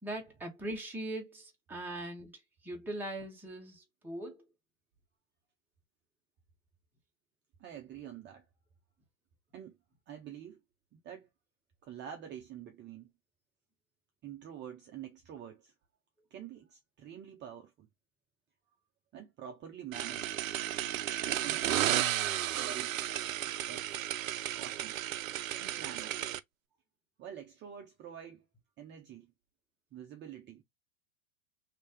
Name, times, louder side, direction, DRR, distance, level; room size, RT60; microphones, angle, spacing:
voice 1, 0.0-4.4, right 1 dB, 5° right, 1.3 m, -41 dB
voice 2, 7.6-8.4 9.5-9.8 10.1-10.6 10.9-11.3 11.8-13.1 14.2-15.7 16.3-17.9 19.1-20.3 21.4-22.2 22.5-23.1 23.5-23.9 24.6-25.0 25.6-26.1 27.2-28.5 28.8-29.3 29.9-30.6, right 9 dB, 25° right, 0.8 m, -47 dB
sound 1, 19.9-26.4, right 12 dB, 75° right, 0.6 m, -33 dB
3.1 x 2.9 x 3.4 m
hypercardioid pair, 110°, 41 cm